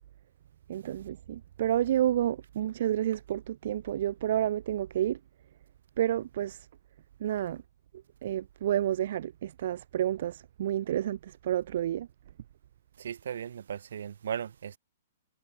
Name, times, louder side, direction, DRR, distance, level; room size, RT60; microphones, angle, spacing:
voice 1, 0.7-5.2 6.0-6.7 7.2-7.6 8.2-12.1, right 11 dB, 50° right, 1.3 m, -30 dB
voice 2, 13.0-14.8, right 8 dB, 70° right, 5.7 m, -37 dB
hypercardioid pair, 170°, 0 cm